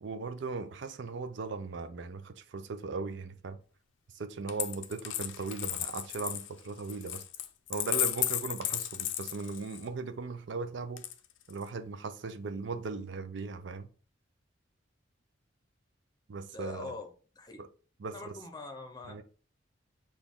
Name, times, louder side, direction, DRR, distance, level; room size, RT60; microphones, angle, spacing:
voice 1, 0.0-3.6 4.1-7.2 7.7-11.0 11.5-13.9 16.3-16.9 17.6-17.7 18.0-18.1 19.1-19.2, right 4 dB, 65° right, 0.4 m, -38 dB
Coin (dropping), 4.5-9.9 11.0-11.7, left 13 dB, 70° left, 0.5 m, -34 dB
voice 2, 16.5-17.1 17.3-17.6 18.1-19.2, left 3 dB, 20° left, 0.7 m, -43 dB
6.2 x 2.3 x 3.5 m
head